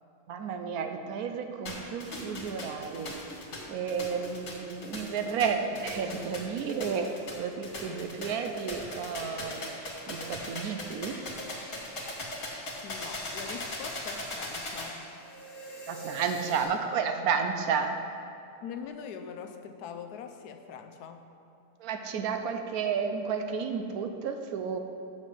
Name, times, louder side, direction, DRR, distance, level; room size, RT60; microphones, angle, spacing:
voice 1, 0.3-3.1 3.7-7.1 7.4-9.6 10.1-11.2 15.9-18.0 21.8-24.8, right 6 dB, 75° right, 6 dB, 1.1 m, -32 dB
sound 1, 1.7-16.7, left 1 dB, 60° left, 2.1 m, -39 dB
voice 2, 12.8-15.1 18.6-21.3, left 7 dB, 80° left, 6 dB, 1.1 m, -42 dB
6.7 x 6.2 x 7.4 m, 2.7 s
omnidirectional pair, 1.7 m